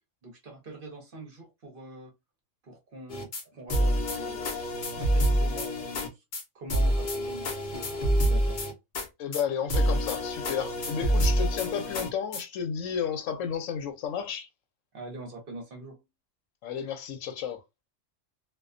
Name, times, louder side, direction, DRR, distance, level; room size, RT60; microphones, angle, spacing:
voice 1, 0.2-2.1 2.6-6.2 6.5-8.6 14.9-16.0, right 2 dB, 50° right, 0.8 m, -44 dB
sound 1, 3.1-3.4 3.7-6.1 6.3-6.4 6.7-9.1 9.3-9.4 9.7-12.4, equal, 50° left, 0.7 m, -27 dB
voice 2, 9.2-14.5 16.6-17.6, left 7 dB, 80° left, 1.0 m, -32 dB
2.3 x 2.2 x 2.4 m
omnidirectional pair, 1.3 m